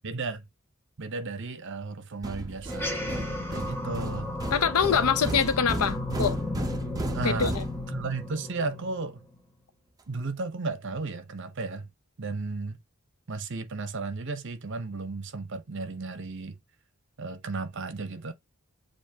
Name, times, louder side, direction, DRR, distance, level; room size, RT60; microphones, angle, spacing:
voice 1, 0.0-0.5 1.0-3.0 3.5-4.4 7.1-7.6 7.9-9.2 10.1-11.9 12.2-12.8 13.3-16.6 17.2-18.3, right 3 dB, 55° right, 0.8 m, -34 dB
sound 1, 2.2-8.2, right 1 dB, 15° right, 0.6 m, -35 dB
sound 2, 2.6-9.4, left 2 dB, 10° left, 1.1 m, -34 dB
voice 2, 4.5-6.4 7.2-7.7, left 7 dB, 80° left, 0.6 m, -25 dB
7.1 x 2.5 x 2.8 m
head